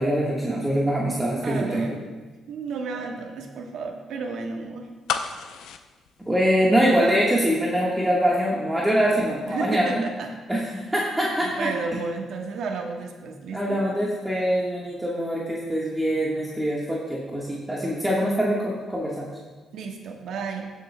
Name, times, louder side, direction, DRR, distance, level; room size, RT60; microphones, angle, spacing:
voice 1, 0.0-2.0 6.3-10.0 10.5-11.7 13.5-19.3, equal, 10° right, -5 dB, 1.4 m, -24 dB
voice 2, 1.4-2.0 2.5-4.9 9.5-10.3 11.1-13.8 19.7-20.7, right 4 dB, 75° right, 2 dB, 1.1 m, -32 dB
sound 1, 5.1-7.1 7.4-7.5, left 7 dB, 85° left, 0.5 m, -31 dB
19.5 x 7.1 x 2.2 m, 1.3 s
cardioid pair, 90°, 0 cm